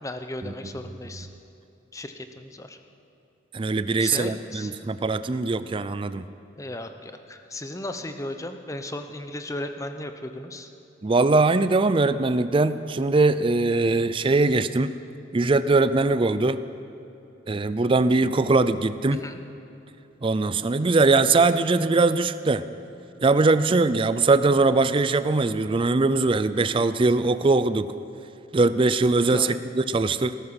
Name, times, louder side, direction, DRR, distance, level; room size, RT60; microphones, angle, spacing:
voice 1, 0.0-1.3 1.9-2.8 4.0-4.7 6.6-10.7 19.2-19.4 29.3-29.6, left 1 dB, 15° left, 8 dB, 0.8 m, -35 dB
voice 2, 3.5-6.2 11.0-14.9 15.3-16.6 17.5-19.2 20.2-22.6 23.2-27.9 28.5-30.3, right 3 dB, 25° right, 13 dB, 0.4 m, -21 dB
19.5 x 12.5 x 5.8 m, 2.9 s
head